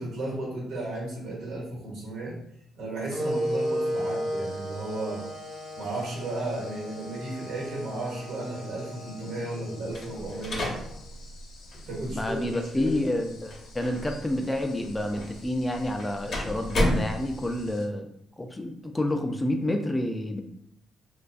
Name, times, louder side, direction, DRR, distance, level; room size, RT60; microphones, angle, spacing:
voice 1, 0.0-2.3 2.8-5.2 5.8-10.7 11.9-12.5 12.7-13.1, right 2 dB, 85° right, -4 dB, 1.0 m, -34 dB
sound 1, 2.4-2.5 3.1-17.9, left 3 dB, 90° left, 0.4 m, -53 dB
sound 2, 3.1-11.1, equal, 50° right, 0.7 m, -35 dB
sound 3, 9.9-17.7, left 1 dB, 60° left, 0.7 m, -34 dB
voice 2, 12.1-18.1 18.4-20.4, left 1 dB, 15° left, 4 dB, 0.3 m, -29 dB
2.5 x 2.2 x 2.4 m, 0.73 s
cardioid pair, 90°, 0 cm